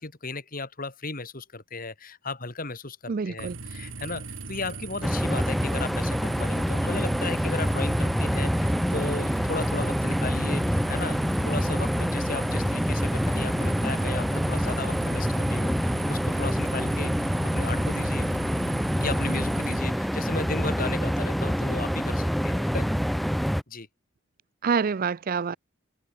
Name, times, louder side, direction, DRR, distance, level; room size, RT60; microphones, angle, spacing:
voice 1, 0.0-18.3 19.0-22.9 23.7-23.9, left 3 dB, 45° left, 3.1 m, -35 dB
voice 2, 3.1-3.6 24.6-25.6, right 5 dB, 45° right, 0.4 m, -26 dB
sound 1, 3.4-19.8, right 3 dB, 70° right, 2.5 m, -39 dB
sound 2, 5.0-23.6, equal, ahead, 0.6 m, -26 dB
open air
head